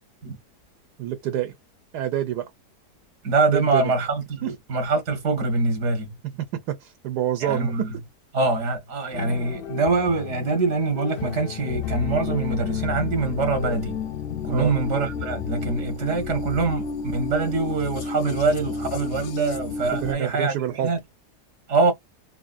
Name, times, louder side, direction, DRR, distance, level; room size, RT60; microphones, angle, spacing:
voice 1, 1.0-1.6 1.9-2.5 3.5-3.9 4.4-4.5 6.4-7.9 14.5-14.7 19.9-20.9, right 11 dB, 85° right, 1.2 m, -27 dB
voice 2, 3.2-6.2 7.4-7.9 8.3-14.0 14.4-20.5 20.8-21.0 21.7-21.9, right 3 dB, 55° right, 1.1 m, -24 dB
sound 1, 9.1-15.7, left 10 dB, 85° left, 0.5 m, -37 dB
sound 2, 11.7-20.1, left 5 dB, 65° left, 0.8 m, -31 dB
3.0 x 2.5 x 2.3 m
omnidirectional pair, 1.7 m